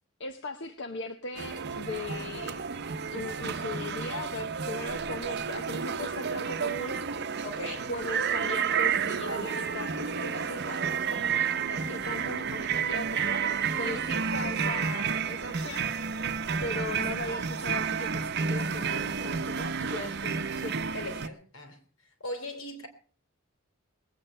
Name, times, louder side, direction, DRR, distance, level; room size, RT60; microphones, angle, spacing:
voice 1, 0.2-2.6 3.1-7.0 7.9-13.4 13.8-15.8 16.6-20.8, left 2 dB, 60° left, 7 dB, 0.9 m, -38 dB
sound 1, 1.4-21.3, right 6 dB, 50° right, 0.8 m, -31 dB
voice 2, 7.4-7.9 13.7-14.1 20.9-21.8 22.2-22.9, left 1 dB, 80° left, 6 dB, 3.3 m, -39 dB
20.0 x 8.9 x 5.5 m, 0.42 s
head